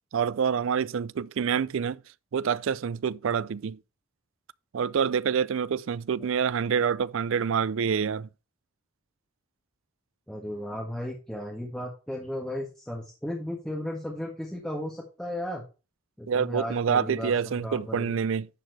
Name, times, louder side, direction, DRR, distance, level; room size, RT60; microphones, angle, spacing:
voice 1, 0.1-2.0 2.3-3.8 4.7-8.3 16.3-18.5, right 7 dB, 65° right, 0.4 m, -27 dB
voice 2, 10.3-15.6 16.2-18.1, left 1 dB, 5° left, 1.6 m, -35 dB
11.0 x 4.6 x 4.4 m
head